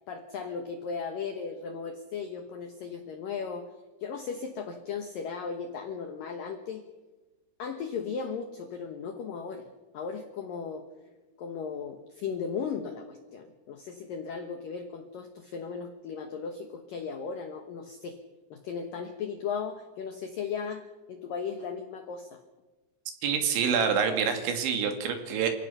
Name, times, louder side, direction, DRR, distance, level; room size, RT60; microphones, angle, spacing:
voice 1, 0.1-3.7 4.0-6.8 7.6-9.6 9.9-10.9 11.4-18.2 18.5-22.4, left 6 dB, 85° left, 6 dB, 2.0 m, -36 dB
voice 2, 23.2-25.5, right 6 dB, 65° right, 5 dB, 4.5 m, -26 dB
28.5 x 17.0 x 5.7 m, 1.2 s
omnidirectional pair, 5.9 m